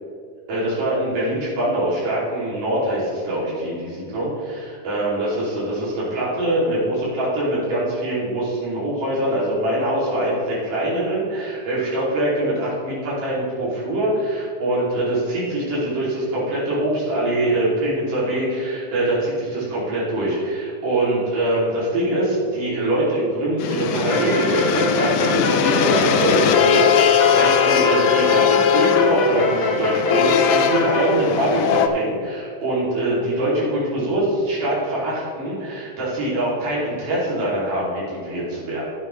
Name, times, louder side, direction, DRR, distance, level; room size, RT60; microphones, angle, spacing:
voice 1, 0.5-38.9, right 1 dB, 80° right, -8 dB, 4.3 m, -23 dB
sound 1, 23.6-31.9, left 8 dB, 75° left, 1.7 m, -20 dB
sound 2, 24.1-31.2, left 2 dB, 55° left, 1.1 m, -23 dB
13.0 x 8.9 x 3.2 m, 2.3 s
omnidirectional pair, 3.6 m